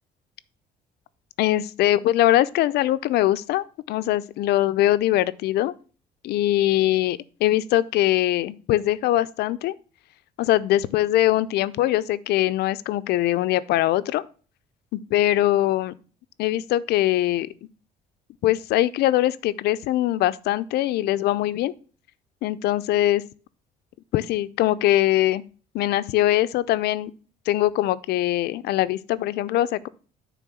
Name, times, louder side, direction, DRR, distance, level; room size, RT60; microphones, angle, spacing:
voice 1, 1.4-5.7 6.2-9.7 10.4-14.3 14.9-15.9 16.4-17.5 18.4-21.7 22.4-23.2 24.1-25.4 25.7-27.1 27.5-29.9, left 14 dB, 75° left, 0.5 m, -22 dB
9.3 x 3.6 x 6.1 m
cardioid pair, 110°, 17 cm